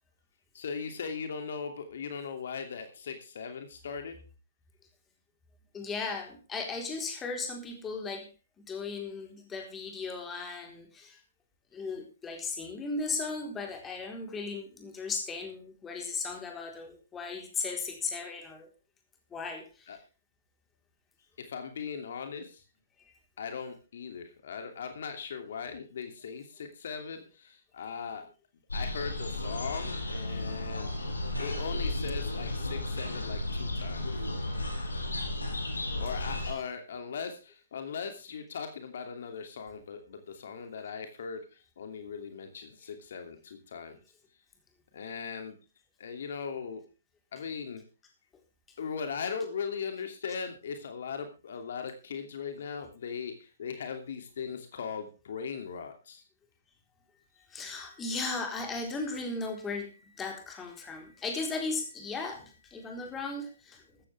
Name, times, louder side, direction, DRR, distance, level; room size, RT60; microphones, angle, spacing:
voice 1, 0.5-4.2 19.9-20.0 21.4-22.6 23.4-28.2 28.7-31.1 31.4-34.3 36.0-44.0 44.9-45.6 46.0-46.8 47.3-47.8 48.8-56.2, left 6 dB, 60° left, 6 dB, 2.7 m, -39 dB
voice 2, 5.7-8.3 8.6-11.2 11.7-18.7 19.3-20.0 57.5-63.8, left 4 dB, 15° left, 3 dB, 4.1 m, -36 dB
sound 1, 28.7-36.5, left 1 dB, 85° left, 6.7 m, -34 dB
14.5 x 14.5 x 3.5 m, 0.32 s
figure-of-eight pair, 125°, 0 cm